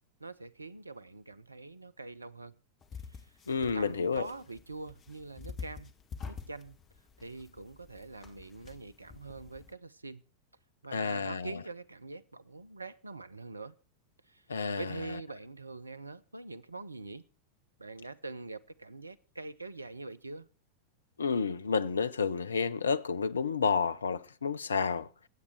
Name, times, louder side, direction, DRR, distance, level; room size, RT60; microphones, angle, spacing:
voice 1, 0.2-2.6 3.1-5.9 6.3-6.8 7.2-10.2 10.8-13.8 14.3-14.5 14.8-17.2 17.8-20.5, right 3 dB, 80° right, 0.7 m, -44 dB
sound 1, 2.8-9.7, left 5 dB, 30° left, 2.0 m, -47 dB
voice 2, 3.5-4.3 10.9-11.6 14.5-15.2 21.2-25.3, left 5 dB, 70° left, 0.7 m, -30 dB
22.5 x 8.6 x 4.6 m
figure-of-eight pair, 90°, 0 cm